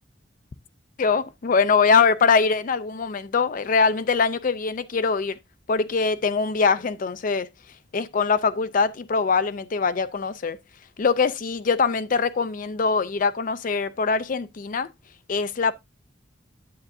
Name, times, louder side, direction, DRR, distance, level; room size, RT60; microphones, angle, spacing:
voice 1, 1.0-5.4 5.7-7.5 7.9-10.6 11.0-14.9 15.3-15.7, left 5 dB, 45° left, 0.4 m, -22 dB
9.3 x 8.0 x 2.6 m
head